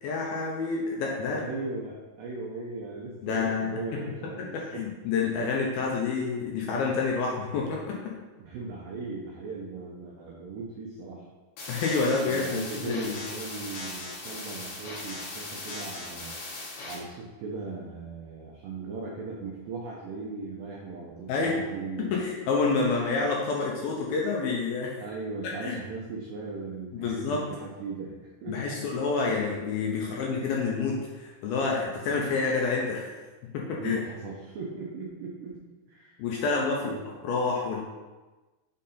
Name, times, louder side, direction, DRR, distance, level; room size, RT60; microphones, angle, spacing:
voice 1, 0.0-1.4 3.2-4.0 4.4-8.0 11.7-13.2 21.3-21.6 22.0-25.0 25.6-25.8 26.9-27.5 28.5-33.1 33.5-34.0 36.2-37.0 37.2-37.8, left 4 dB, 85° left, -2 dB, 2.3 m, -28 dB
voice 2, 1.3-4.8 8.4-11.3 12.2-16.4 16.8-22.1 25.0-28.8 30.1-30.2 33.7-35.6 35.9-36.2 36.8-37.0, right 3 dB, 85° right, -2 dB, 1.9 m, -38 dB
sound 1, 11.6-16.9, left 2 dB, 65° left, 2.8 m, -39 dB
6.5 x 3.8 x 4.1 m, 1.2 s
omnidirectional pair, 4.8 m